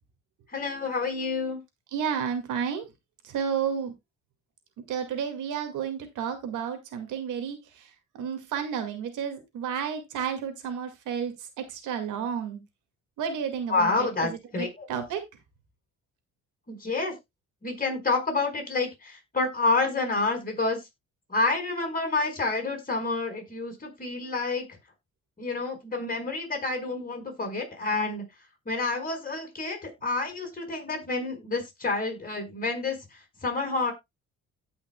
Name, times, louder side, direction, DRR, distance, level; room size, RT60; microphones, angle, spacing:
voice 1, 0.5-1.6 13.7-14.8 16.7-17.1 17.6-20.8 21.3-24.6 25.4-28.2 28.6-33.0 33.4-33.9, left 3 dB, 30° left, 5.1 m, -28 dB
voice 2, 1.9-2.9 3.2-3.9 4.9-12.6 13.2-15.2, right 7 dB, 85° right, 2.2 m, -32 dB
17.0 x 5.7 x 2.3 m
cardioid pair, 90°, 30 cm